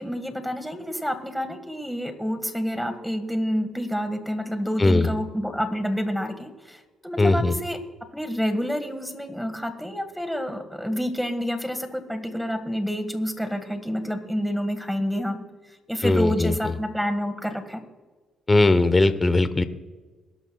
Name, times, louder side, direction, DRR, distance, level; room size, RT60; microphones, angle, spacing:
voice 1, 0.0-7.8 8.1-15.4 15.9-17.8, equal, ahead, 8 dB, 1.8 m, -28 dB
voice 2, 4.8-5.1 7.2-7.5 16.0-16.5 18.5-19.6, left 2 dB, 20° left, 12 dB, 1.0 m, -19 dB
22.5 x 12.0 x 2.4 m, 1.3 s
cardioid pair, 90°, 0 cm